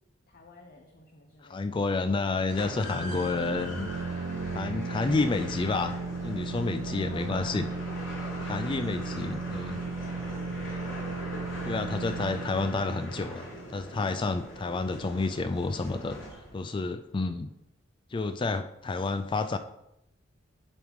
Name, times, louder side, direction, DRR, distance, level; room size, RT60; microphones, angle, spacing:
voice 1, 0.3-1.8 6.9-10.9, left 2 dB, 50° left, 2 dB, 0.8 m, -50 dB
voice 2, 1.5-3.9 4.5-5.9 6.2-7.7 8.5-9.8 11.6-16.2 16.5-17.5 18.1-19.6, left 3 dB, 25° left, 9 dB, 0.3 m, -30 dB
sound 1, 2.5-16.7, equal, 80° left, 3.2 m, -41 dB
sound 2, 2.7-14.2, right 3 dB, 75° right, 0.4 m, -36 dB
10.5 x 3.6 x 4.6 m, 0.84 s
head